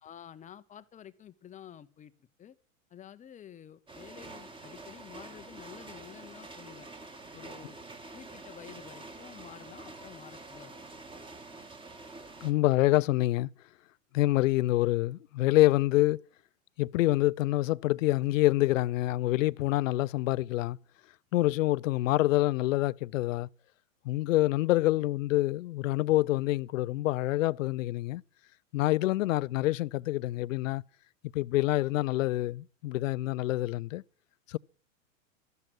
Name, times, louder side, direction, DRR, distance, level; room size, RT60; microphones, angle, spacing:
voice 1, 0.0-2.1 2.4-2.6 2.9-6.9 7.3-7.8 8.1-10.8, left 9 dB, 20° left, 0.9 m, -50 dB
sound 1, 3.9-12.5, right 2 dB, 10° right, 2.2 m, -47 dB
voice 2, 12.4-13.5 14.1-16.2 16.8-20.8 21.3-23.5 24.0-28.2 28.7-30.8 31.3-34.0 34.5-34.6, left 17 dB, 70° left, 0.6 m, -26 dB
13.5 x 12.5 x 6.2 m
hypercardioid pair, 125°, 40 cm